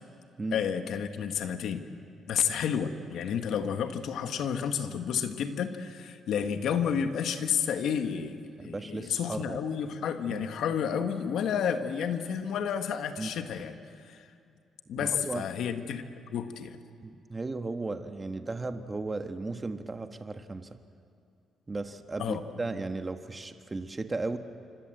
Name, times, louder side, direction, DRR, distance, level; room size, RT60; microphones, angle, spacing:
voice 1, 0.5-1.8 2.3-14.3 14.9-16.0 16.3-16.8 22.2-22.4, left 7 dB, 75° left, 7 dB, 1.7 m, -31 dB
voice 2, 8.6-9.6 10.3-10.4 13.2-13.3 14.9-15.5 17.0-20.8 21.7-24.4, right 3 dB, 25° right, 7 dB, 1.5 m, -35 dB
26.0 x 25.5 x 8.0 m, 2.4 s
cardioid pair, 90°, 0 cm